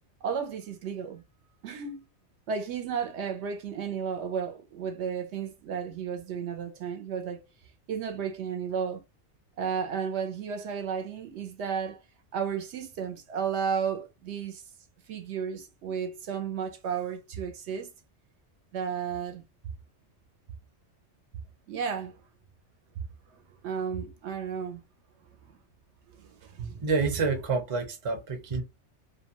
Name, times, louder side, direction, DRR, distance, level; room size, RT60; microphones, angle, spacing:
voice 1, 0.2-1.2 1.6-2.0 2.5-7.5 7.9-9.0 9.6-12.0 12.3-14.6 15.1-17.9 18.7-19.4 21.7-22.2 23.3-24.8 26.1-26.8, right 7 dB, 70° right, 0.8 m, -33 dB
voice 2, 26.8-28.6, right 4 dB, 35° right, 0.6 m, -28 dB
2.5 x 2.2 x 2.7 m
omnidirectional pair, 1.2 m